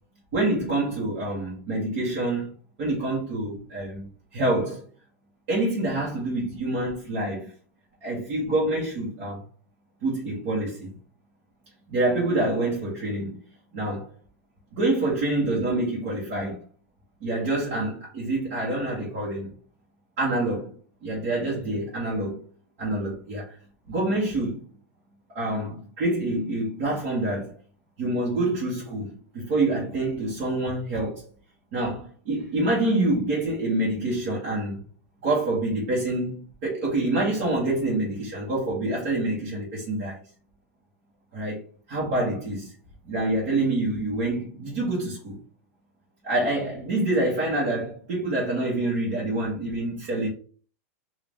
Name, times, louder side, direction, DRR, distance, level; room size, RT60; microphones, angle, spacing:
voice 1, 0.3-2.5 2.8-4.8 5.5-7.5 8.0-9.4 10.0-10.9 11.9-13.4 13.7-14.1 14.7-16.6 17.2-19.5 20.2-20.7 21.0-22.4 22.8-23.6 23.9-24.6 25.3-27.5 28.0-31.2 31.7-34.8 35.2-40.2 41.3-41.6 41.9-42.7 43.0-45.4 46.2-50.3, right 2 dB, 35° right, 1.2 m, -26 dB
3.7 x 2.5 x 3.5 m
supercardioid pair, 180°, 8 cm